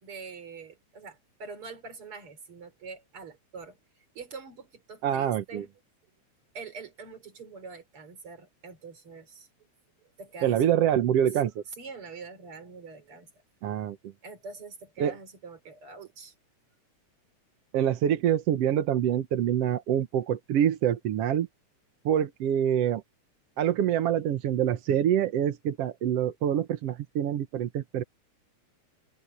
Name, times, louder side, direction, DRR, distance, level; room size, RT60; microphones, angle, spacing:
voice 1, 0.0-3.8 4.1-5.7 6.5-9.5 10.2-10.9 11.8-13.3 14.2-16.3, right 4 dB, 45° right, 4.8 m, -44 dB
voice 2, 5.0-5.7 10.4-11.6 13.6-14.0 15.0-15.2 17.7-21.5 22.1-23.0 23.6-28.0, right 10 dB, 65° right, 1.9 m, -26 dB
omnidirectional pair, 3.4 m